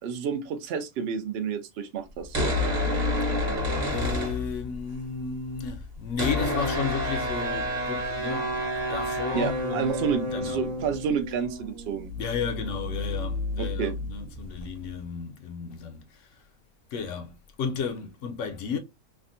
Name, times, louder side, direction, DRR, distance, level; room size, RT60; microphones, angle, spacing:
voice 1, 0.0-2.5 9.3-12.1 13.6-13.9, right 7 dB, 65° right, 0.6 m, -30 dB
sound 1, 2.2-4.9 5.2-5.3 5.5-14.9, left 1 dB, 35° right, 1.0 m, -30 dB
voice 2, 3.9-10.6 12.1-16.4 16.9-18.8, left 6 dB, 70° left, 0.8 m, -33 dB
3.5 x 2.1 x 2.5 m
omnidirectional pair, 1.5 m